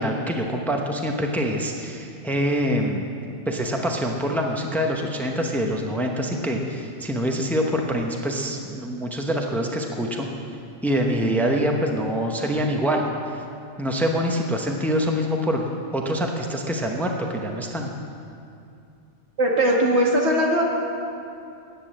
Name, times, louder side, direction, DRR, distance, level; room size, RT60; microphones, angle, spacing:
voice 1, 0.0-3.1 3.5-10.3 10.8-13.0 13.8-17.9, equal, ahead, 1 dB, 0.8 m, -25 dB
voice 2, 19.4-20.6, right 1 dB, 90° right, -2 dB, 2.0 m, -19 dB
10.0 x 8.6 x 7.4 m, 2.6 s
omnidirectional pair, 1.1 m